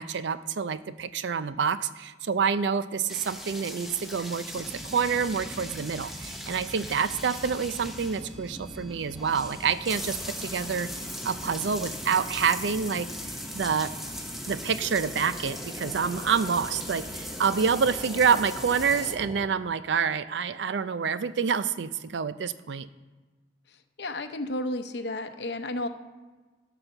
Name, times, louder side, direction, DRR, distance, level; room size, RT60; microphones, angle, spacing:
voice 1, 0.0-10.9 11.2-13.1 13.5-13.9 14.5-22.9, right 6 dB, 75° right, 14 dB, 0.5 m, -27 dB
sound 1, 3.1-19.2, left 1 dB, ahead, 0.8 m, -40 dB
sound 2, 4.5-19.5, equal, 25° right, 0.9 m, -43 dB
voice 2, 24.0-25.9, left 1 dB, 65° left, 8 dB, 0.7 m, -32 dB
12.5 x 4.2 x 6.6 m, 1.3 s
head